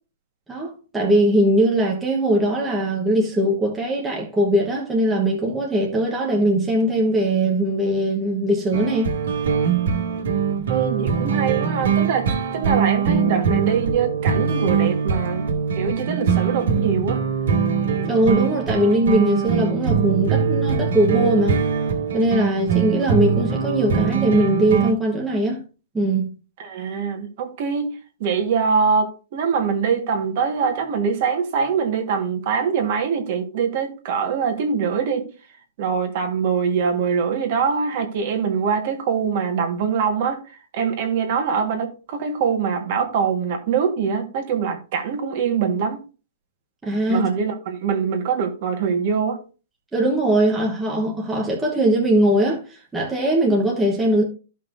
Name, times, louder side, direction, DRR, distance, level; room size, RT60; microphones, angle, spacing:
voice 1, 0.5-9.1 18.0-21.6 22.1-25.6 25.9-26.3 46.8-47.3 49.9-54.2, right 1 dB, 5° right, 1.1 m, -20 dB
sound 1, 8.7-24.9, right 6 dB, 70° right, 2.0 m, -22 dB
voice 2, 10.7-15.4 15.7-17.2 26.6-27.9 28.2-35.3 35.8-40.4 40.7-46.0 47.1-49.4, right 6 dB, 40° right, 1.5 m, -23 dB
14.0 x 5.5 x 2.6 m
hypercardioid pair, 175°, 0 cm